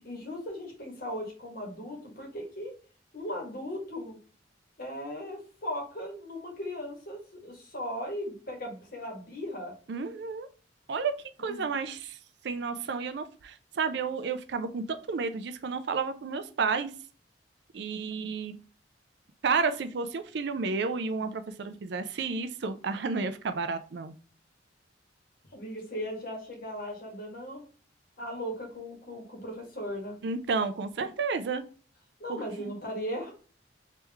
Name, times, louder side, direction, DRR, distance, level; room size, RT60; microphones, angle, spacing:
voice 1, 0.0-2.7 3.1-4.2 4.8-9.7 11.4-11.7 25.5-27.6 28.2-30.2 32.2-33.3, equal, 50° left, 1 dB, 1.4 m, -37 dB
voice 2, 9.9-10.5 10.9-11.1 11.4-12.2 12.4-16.9 17.7-18.6 19.4-24.1 30.2-31.6 32.3-32.7, right 4 dB, 60° right, 10 dB, 0.4 m, -31 dB
3.3 x 3.1 x 3.4 m, 0.40 s
head